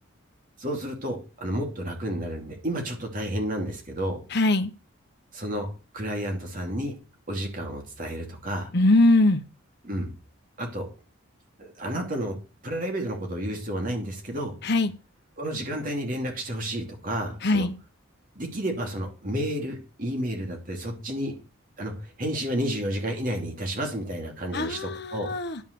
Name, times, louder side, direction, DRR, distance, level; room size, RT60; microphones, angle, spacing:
voice 1, 0.6-4.2 5.3-5.7 5.9-7.0 7.3-8.7 9.8-10.1 10.6-10.9 11.6-12.4 12.6-14.5 15.4-17.7 18.3-21.3 21.8-25.3, equal, 40° right, 2 dB, 3.0 m, -31 dB
voice 2, 4.3-4.7 8.7-9.4 14.6-14.9 17.4-17.7 24.5-25.6, left 2 dB, 50° left, 7 dB, 1.0 m, -21 dB
11.0 x 5.5 x 7.0 m, 0.32 s
head